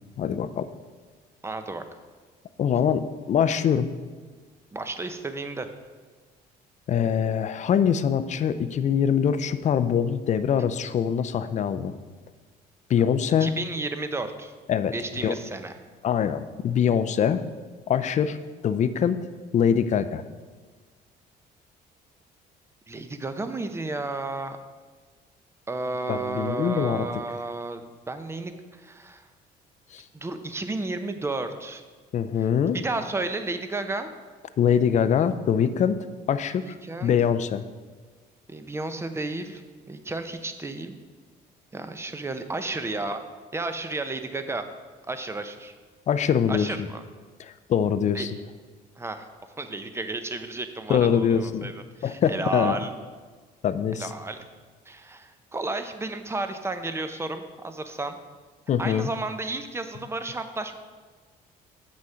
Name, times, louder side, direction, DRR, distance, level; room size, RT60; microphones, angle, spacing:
voice 1, 0.2-0.7 2.6-3.9 6.9-11.9 12.9-13.5 14.7-15.3 16.0-17.4 17.9-18.4 18.6-19.2 19.5-20.2 26.1-27.1 29.9-30.0 32.1-32.8 34.6-36.0 36.3-36.8 37.0-37.6 46.1-46.9 47.4-48.4 50.9-51.7 52.0-52.8 53.6-54.1 58.7-59.1, left 8 dB, 45° left, 12 dB, 0.5 m, -23 dB
voice 2, 1.4-1.8 4.7-5.7 13.4-14.5 14.9-15.7 22.9-24.6 25.7-29.2 30.1-31.8 32.7-34.1 36.6-37.1 38.5-39.6 39.9-41.0 41.7-43.2 43.5-44.6 45.1-45.7 46.5-47.0 48.1-48.3 49.0-49.3 49.6-52.9 54.0-54.4 54.9-58.2 58.8-60.8, right 2 dB, 15° right, 8 dB, 0.7 m, -32 dB
7.6 x 6.2 x 5.7 m, 1.4 s
cardioid pair, 110°, 17 cm